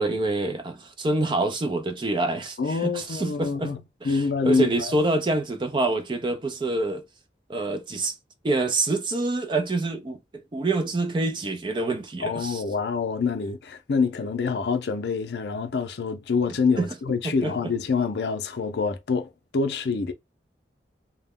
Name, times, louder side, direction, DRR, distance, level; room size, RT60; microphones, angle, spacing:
voice 1, 0.0-3.7 4.0-7.0 7.5-8.1 8.4-12.6 16.8-16.9 17.2-17.5, right 2 dB, 25° right, 0.4 m, -26 dB
voice 2, 2.6-4.9 12.2-20.1, left 5 dB, 70° left, 0.5 m, -26 dB
2.2 x 2.1 x 3.5 m
head